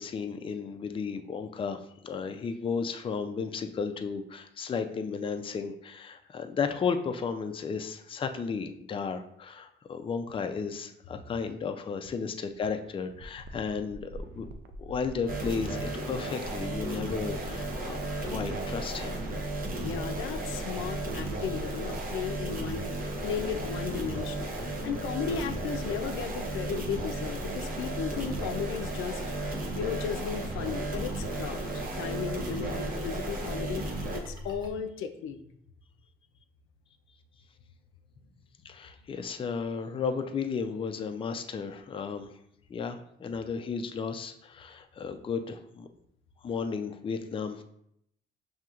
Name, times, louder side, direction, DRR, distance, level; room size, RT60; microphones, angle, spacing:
voice 1, 0.0-14.5 14.8-18.0 18.2-19.2 38.6-42.4 42.7-45.9 46.4-47.6, left 5 dB, 25° left, 7 dB, 0.4 m, -34 dB
sound 1, 12.6-12.7 13.2-18.4, right 1 dB, 65° right, 0.5 m, -45 dB
sound 2, 15.3-34.2, right 2 dB, 45° right, 0.8 m, -35 dB
sound 3, 16.4-34.7, equal, 25° right, 1.3 m, -41 dB
voice 2, 19.8-33.8 34.1-35.4, left 7 dB, 85° left, 7 dB, 0.4 m, -35 dB
5.6 x 2.8 x 2.4 m, 0.74 s
cardioid pair, 90°, 20 cm